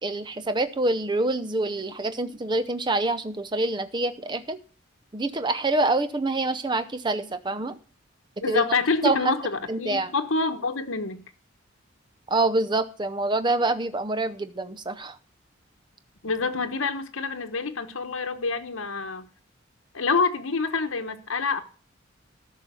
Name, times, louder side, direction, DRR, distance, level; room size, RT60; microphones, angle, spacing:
voice 1, 0.0-4.6 5.1-7.7 8.5-8.6 9.0-9.2 9.7-10.1 12.3-15.2, right 2 dB, 20° right, 0.6 m, -26 dB
voice 2, 8.4-11.3 16.2-19.2 19.9-21.6, left 4 dB, 75° left, 1.1 m, -27 dB
13.0 x 5.7 x 6.3 m
head